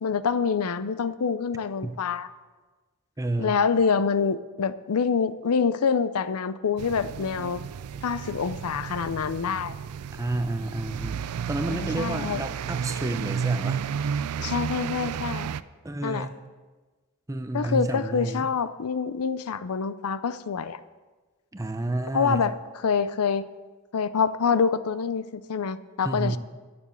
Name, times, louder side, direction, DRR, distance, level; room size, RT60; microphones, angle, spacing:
voice 1, 0.0-2.3 3.4-7.6 8.0-9.7 11.7-12.4 14.4-15.5 16.0-16.3 17.5-20.8 22.1-22.6 22.8-23.5 23.9-26.4, left 6 dB, 85° left, 14 dB, 0.5 m, -26 dB
voice 2, 3.2-3.5 10.1-11.2 11.5-13.8 15.8-16.3 17.3-18.5 21.5-22.5 26.0-26.4, right 2 dB, 15° right, 8 dB, 0.5 m, -30 dB
sound 1, 6.8-15.6, right 7 dB, 90° right, 0.4 m, -32 dB
9.9 x 7.0 x 7.6 m, 1.3 s
head